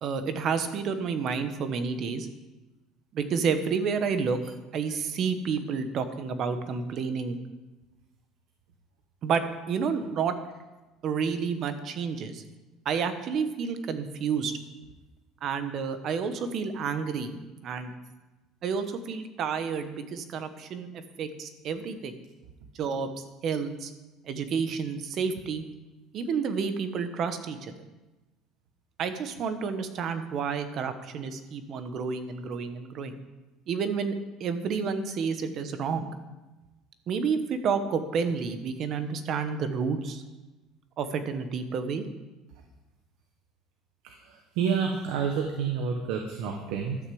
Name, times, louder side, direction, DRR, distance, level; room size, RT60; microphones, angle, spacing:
voice 1, 0.0-2.3 3.1-7.4 9.2-10.3 11.0-12.4 12.8-14.5 15.4-17.9 18.6-20.9 21.2-22.2 22.7-23.9 24.2-25.6 26.1-27.7 29.0-33.2 33.7-34.1 34.4-36.1 37.1-40.2 41.0-42.1 46.7-46.8, right 6 dB, 40° right, 9 dB, 1.1 m, -30 dB
voice 2, 44.6-47.0, right 6 dB, 75° right, 3 dB, 1.4 m, -28 dB
12.0 x 6.6 x 7.8 m, 1.1 s
cardioid pair, 160°, 0 cm